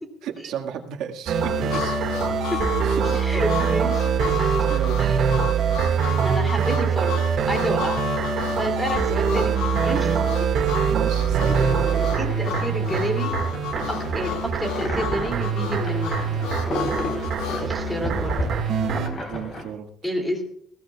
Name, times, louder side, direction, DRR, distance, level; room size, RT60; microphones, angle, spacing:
voice 1, 0.2-2.0 2.8-3.4 4.7-5.0 9.3-10.1 10.9-11.7 19.3-19.9, right 8 dB, 70° right, 3 dB, 1.8 m, -34 dB
sound 1, 1.3-19.1, right 6 dB, 50° right, 1.9 m, -24 dB
Harmonica, 1.7-17.7, left 9 dB, 90° left, 1.4 m, -33 dB
voice 2, 3.1-4.6 5.0-5.2 6.2-8.0 8.6-10.5 12.2-13.3 13.9-16.4 17.5-18.4 20.0-20.4, right 1 dB, 5° left, 3 dB, 2.8 m, -29 dB
sound 2, 11.2-19.6, left 1 dB, 30° left, 3.8 m, -32 dB
21.5 x 16.0 x 2.4 m, 0.65 s
cardioid pair, 170°, 0 cm